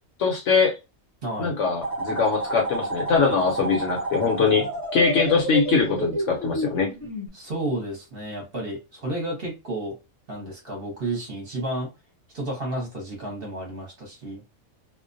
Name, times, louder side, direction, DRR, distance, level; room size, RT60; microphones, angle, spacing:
voice 1, 0.2-0.7 1.4-6.9, left 5 dB, 65° left, 0.9 m, -22 dB
voice 2, 1.2-1.5 7.3-9.9 10.3-11.9 12.3-14.4, right 1 dB, 45° right, 0.9 m, -31 dB
sound 1, 1.8-7.3, right 2 dB, 20° left, 0.7 m, -30 dB
2.4 x 2.1 x 2.5 m
omnidirectional pair, 1.5 m